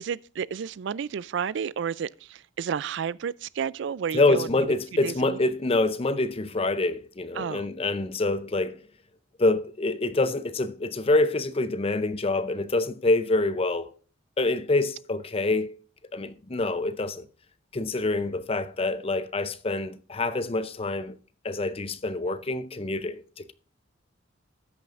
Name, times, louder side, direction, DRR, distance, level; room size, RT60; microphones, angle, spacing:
voice 1, 0.0-4.5 5.0-5.4 7.4-7.7, right 7 dB, 65° right, 0.3 m, -31 dB
voice 2, 4.1-8.8 9.4-13.9 14.4-15.7 16.1-17.2 17.7-21.1 21.4-23.2, left 2 dB, 30° left, 0.6 m, -26 dB
13.0 x 9.1 x 2.5 m
head